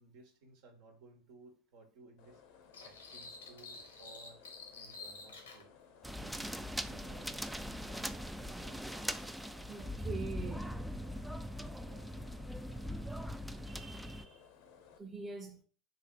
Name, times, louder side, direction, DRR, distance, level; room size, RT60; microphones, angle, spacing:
voice 1, 0.0-2.4 2.8-4.4 4.7-5.7 6.2-9.1 11.8-12.2, right 2 dB, 65° right, 1.2 m, -58 dB
sound 1, 2.2-15.0, left 7 dB, 60° left, 0.7 m, -60 dB
sound 2, 2.7-5.6, left 4 dB, 85° left, 1.0 m, -50 dB
sound 3, 6.0-14.3, equal, 5° right, 0.4 m, -41 dB
voice 2, 9.7-10.7 13.6-14.4 15.0-15.6, right 4 dB, 20° right, 0.9 m, -44 dB
3.7 x 2.7 x 4.6 m
hypercardioid pair, 80°, 0 cm